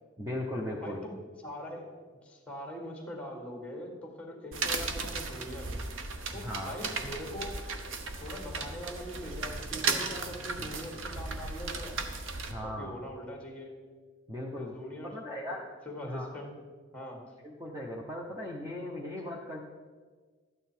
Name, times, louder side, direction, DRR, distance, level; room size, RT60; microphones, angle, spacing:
voice 1, 0.2-1.0 6.3-6.8 10.6-11.0 12.5-13.0 14.3-14.7 15.0-15.6 16.0-16.3 17.4-19.6, left 1 dB, 15° right, -2 dB, 1.0 m, -38 dB
voice 2, 0.7-1.9 2.2-5.8 6.3-7.6 8.2-12.0 12.6-13.8 14.6-16.5 16.9-17.2, equal, 5° left, 1 dB, 1.8 m, -42 dB
sound 1, 4.5-12.5, right 4 dB, 75° right, 0.9 m, -36 dB
12.5 x 9.0 x 4.5 m, 1.5 s
head